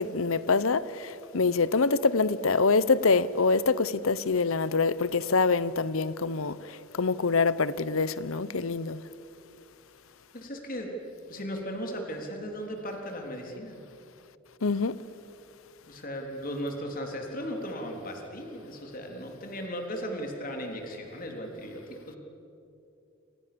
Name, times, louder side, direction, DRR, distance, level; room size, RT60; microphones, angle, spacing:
voice 1, 0.0-6.6 7.0-9.0 14.6-15.0, left 4 dB, 75° left, 0.9 m, -25 dB
voice 2, 10.3-10.9 11.3-13.8 15.9-22.2, equal, 40° left, 3.7 m, -36 dB
27.5 x 27.0 x 7.0 m
head